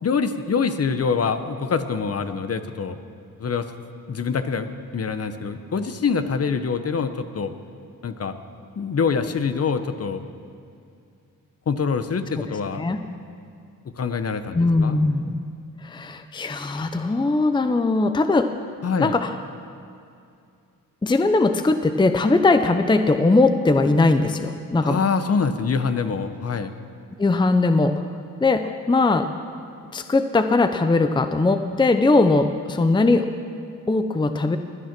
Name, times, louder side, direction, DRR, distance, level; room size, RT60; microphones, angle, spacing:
voice 1, 0.0-3.0 3.4-3.7 4.1-7.5 8.0-8.4 8.8-10.2 11.7-12.9 14.0-15.0 18.8-19.2 24.8-26.7, left 5 dB, 45° left, 9 dB, 0.9 m, -25 dB
voice 2, 14.5-15.4 15.8-18.5 19.0-19.3 21.0-25.0 27.2-28.1 28.4-29.3 29.9-33.3 33.9-34.6, left 3 dB, 15° left, 8 dB, 0.6 m, -20 dB
21.0 x 9.5 x 6.0 m, 2.4 s
cardioid pair, 90°, 34 cm